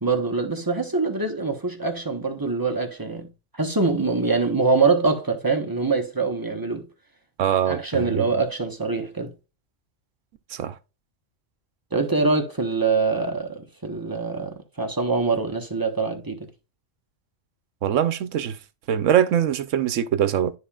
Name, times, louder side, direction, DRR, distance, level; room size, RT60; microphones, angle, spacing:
voice 1, 0.0-6.9 7.7-9.3 11.9-16.5, right 4 dB, 20° right, 1.1 m, -24 dB
voice 2, 7.4-8.3 10.5-10.8 17.8-18.6 18.9-20.5, right 9 dB, 80° right, 1.0 m, -22 dB
12.5 x 4.3 x 2.4 m
omnidirectional pair, 1.3 m